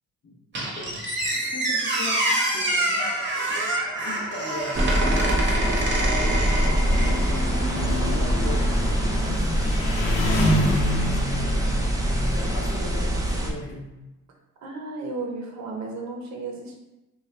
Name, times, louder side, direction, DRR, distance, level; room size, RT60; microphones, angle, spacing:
Squeak, 0.5-7.4, right 1 dB, 40° right, 0.9 m, -26 dB
voice 1, 1.3-3.1 3.3-3.6 4.0-4.8 5.4-7.4 7.9-11.2 12.2-13.9, left 2 dB, 45° left, -2 dB, 0.7 m, -39 dB
sound 1, 4.7-13.5, equal, 10° right, 0.5 m, -24 dB
Engine, 6.1-12.7, left 1 dB, 90° left, 0.7 m, -28 dB
voice 2, 14.6-16.7, right 3 dB, 65° right, 0 dB, 0.7 m, -34 dB
2.7 x 2.3 x 3.2 m, 1.0 s
cardioid pair, 90°, 30 cm